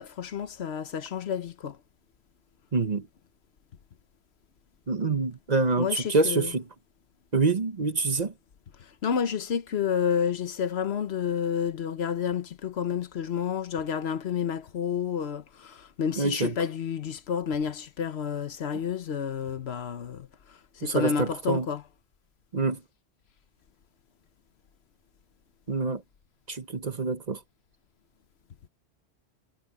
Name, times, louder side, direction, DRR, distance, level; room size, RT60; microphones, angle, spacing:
voice 1, 0.0-1.8 5.8-6.5 9.0-20.3 20.8-21.8, left 7 dB, 75° left, 1.2 m, -30 dB
voice 2, 2.7-3.1 4.9-6.6 7.3-8.3 16.2-16.5 20.8-21.7 22.5-22.8 25.7-26.0 26.5-27.4, right 3 dB, 40° right, 1.1 m, -26 dB
omnidirectional pair, 1.1 m